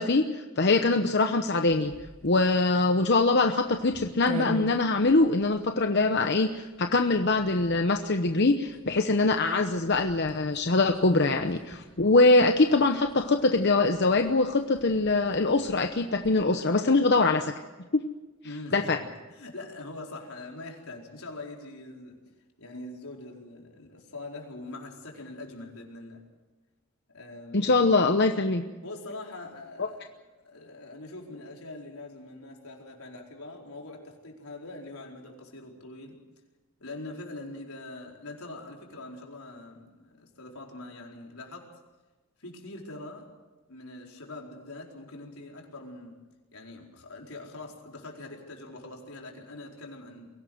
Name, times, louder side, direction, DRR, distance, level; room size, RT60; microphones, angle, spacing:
voice 1, 0.0-1.9 2.2-17.5 17.9-18.0 18.7-19.0 27.5-28.6 29.8-29.9, left 3 dB, 50° left, 6 dB, 0.9 m, -23 dB
sound 1, 1.6-16.6, right 1 dB, 35° right, 3.4 m, -46 dB
voice 2, 18.4-22.2 22.6-26.2 27.1-27.7 28.8-36.2 36.8-41.7 42.4-43.3 43.7-46.2 46.5-50.3, left 2 dB, 85° left, 0 dB, 4.6 m, -43 dB
23.0 x 17.5 x 7.9 m, 1.2 s
head